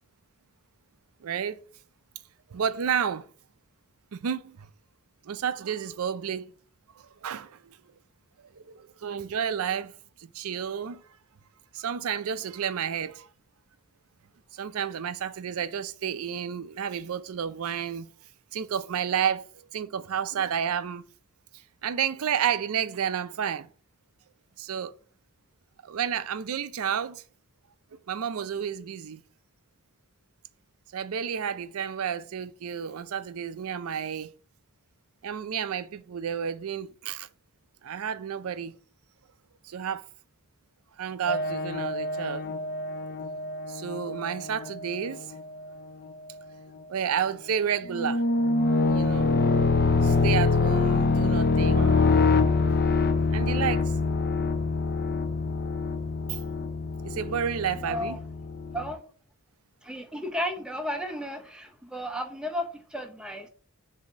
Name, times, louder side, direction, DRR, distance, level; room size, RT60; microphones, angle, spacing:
voice 1, 1.2-1.6 2.5-3.3 4.1-4.7 5.2-6.5 7.0-7.6 8.5-9.9 10.2-11.0 11.7-13.3 14.5-18.1 18.5-21.0 21.8-23.7 24.6-25.0 25.8-27.2 28.1-29.2 30.9-34.3 35.2-37.3 37.8-38.8 39.6-40.1 41.0-42.4 43.7-45.3 46.9-48.2 48.8-49.3 50.0-52.4 53.3-53.9 56.3-56.4 57.0-58.2, right 8 dB, 75° right, 0.4 m, -31 dB
sound 1, 41.3-45.8 46.3-46.4 47.9-58.9, left 4 dB, 45° left, 0.6 m, -25 dB
voice 2, 57.8-58.2 58.7-59.0 59.8-63.5, equal, 5° right, 0.7 m, -33 dB
7.2 x 2.7 x 4.8 m
head